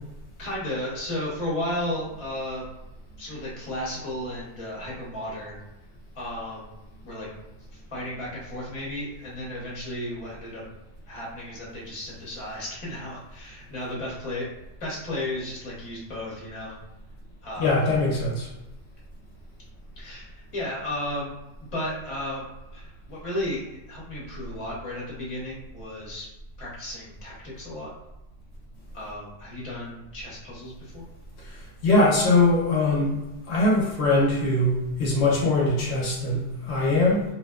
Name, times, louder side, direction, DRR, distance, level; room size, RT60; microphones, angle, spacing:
voice 1, 0.4-2.6 3.2-5.6 6.1-6.7 7.0-7.3 7.7-10.6 11.1-14.5 14.8-16.8 17.4-17.8 20.0-21.3 21.6-22.5 22.7-26.3 26.6-27.9 28.9-31.0, left 1 dB, 30° left, -5 dB, 0.8 m, -34 dB
voice 2, 17.6-18.5 31.4-33.2 33.5-37.2, left 2 dB, 75° left, -3 dB, 0.9 m, -22 dB
2.7 x 2.0 x 2.2 m, 0.96 s
omnidirectional pair, 1.2 m